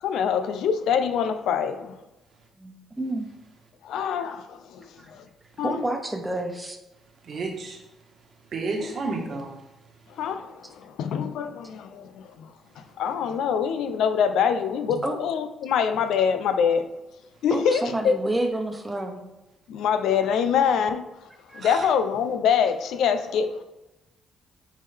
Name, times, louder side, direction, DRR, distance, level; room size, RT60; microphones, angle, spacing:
voice 1, 0.0-2.0 3.8-5.3 5.6-5.8 8.8-9.0 10.1-16.9 17.4-18.2 19.7-23.6, left 7 dB, 80° left, 0.5 m, -25 dB
voice 2, 2.6-3.3 5.6-6.8 15.0-15.2 17.5-19.2 21.5-21.6, right 1 dB, 10° right, 1.1 m, -29 dB
voice 3, 7.2-7.8 8.5-9.5 21.6-21.9, right 3 dB, 55° right, 1.4 m, -31 dB
9.7 x 3.6 x 3.4 m
cardioid pair, 90°, 0 cm